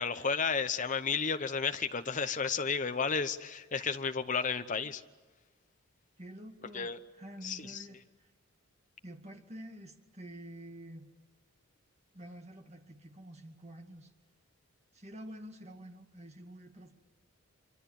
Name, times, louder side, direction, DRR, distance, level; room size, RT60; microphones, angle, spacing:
voice 1, 0.0-5.0 6.7-7.0 7.4-7.8, left 5 dB, 35° left, 9 dB, 0.9 m, -32 dB
voice 2, 6.2-8.3 9.0-11.1 12.1-14.1 14.9-16.9, right 1 dB, 30° right, 4 dB, 2.1 m, -48 dB
25.0 x 25.0 x 8.7 m, 1.4 s
head